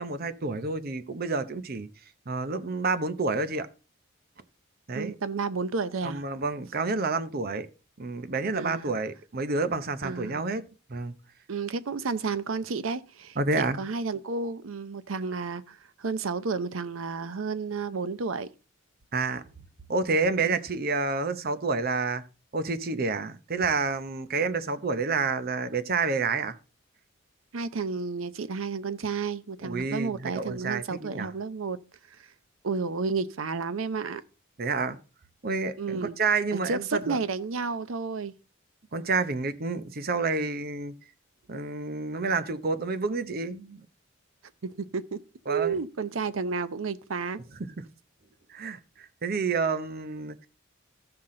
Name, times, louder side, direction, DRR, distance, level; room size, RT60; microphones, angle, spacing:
voice 1, 0.0-1.9 2.3-3.7 4.9-5.1 6.0-7.7 8.0-11.1 13.4-13.8 19.1-19.4 19.9-22.2 22.5-26.6 29.6-31.3 34.6-35.0 35.4-37.2 38.9-40.9 41.5-43.8 45.5-45.8 48.5-50.5, right 4 dB, 50° right, 0.8 m, -29 dB
voice 2, 4.9-6.2 8.5-8.9 10.0-10.4 11.5-13.4 13.8-18.5 20.4-20.6 27.5-31.8 32.2-32.3 32.6-34.2 35.8-36.2 36.7-38.3 44.6-45.2 45.5-47.4, right 4 dB, 85° right, 0.6 m, -31 dB
14.5 x 5.8 x 3.8 m
head